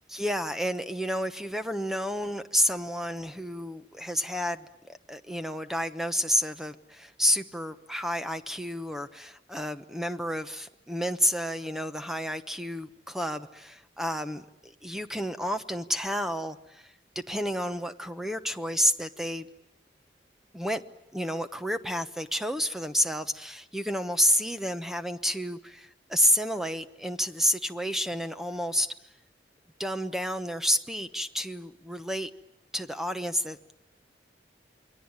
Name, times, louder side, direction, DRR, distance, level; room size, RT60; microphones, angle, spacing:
voice 1, 0.0-19.5 20.5-20.8 21.1-28.9 29.8-32.3 32.7-33.7, equal, ahead, 1.0 m, -30 dB
28.5 x 22.5 x 8.8 m
head